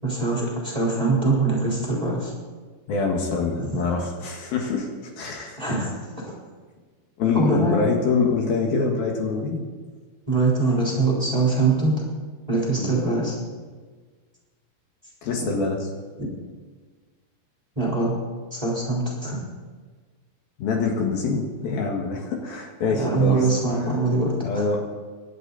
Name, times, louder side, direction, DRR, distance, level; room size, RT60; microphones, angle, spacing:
voice 1, 0.0-2.3 3.6-3.7 5.6-5.9 7.3-7.8 10.3-12.0 12.5-13.4 15.4-15.5 16.2-16.3 17.7-18.1 18.5-19.4 22.9-24.6, right 3 dB, 10° right, -5 dB, 3.4 m, -23 dB
voice 2, 2.9-4.9 5.2-5.6 7.2-9.6 12.8-12.9 15.2-15.9 20.6-23.5 24.4-24.8, left 4 dB, 70° left, 0 dB, 3.5 m, -25 dB
26.5 x 11.0 x 4.1 m, 1.5 s
omnidirectional pair, 4.6 m